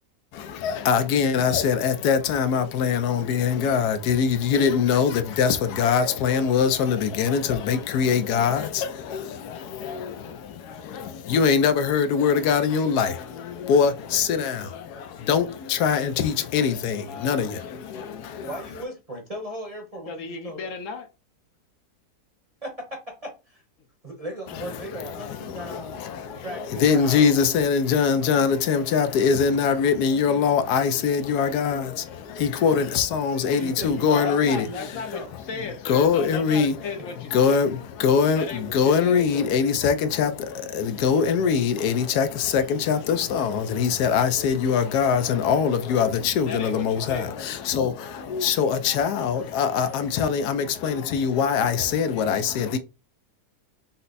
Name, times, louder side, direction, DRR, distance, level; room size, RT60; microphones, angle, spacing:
voice 1, 0.3-18.5 24.5-35.2 35.5-36.8 37.1-52.8, left 6 dB, 85° left, 1.2 m, -23 dB
voice 2, 9.4-10.4 13.0-14.0 14.3-14.5 17.0-18.2 20.1-21.1 34.1-37.6 38.3-39.5 46.4-47.3, left 5 dB, 60° left, 1.0 m, -36 dB
voice 3, 18.4-20.1 20.4-20.7 22.6-23.6 24.0-26.0 26.4-27.4 33.5-35.3, equal, 30° right, 0.9 m, -37 dB
5.7 x 2.1 x 3.9 m
omnidirectional pair, 1.7 m